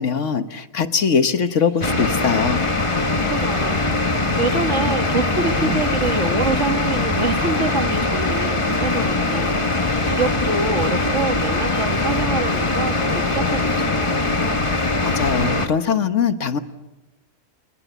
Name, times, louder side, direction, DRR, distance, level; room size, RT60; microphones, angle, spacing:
voice 1, 0.0-2.6 15.0-16.6, left 6 dB, 65° left, 10 dB, 1.5 m, -21 dB
sound 1, 1.2-13.0, right 1 dB, 45° left, 4.5 m, -43 dB
sound 2, 1.8-15.7, left 2 dB, 25° left, 1.4 m, -21 dB
voice 2, 3.1-3.8 4.4-14.2, right 4 dB, 60° right, 6 dB, 2.2 m, -26 dB
28.0 x 19.5 x 8.3 m, 1.0 s
omnidirectional pair, 1.4 m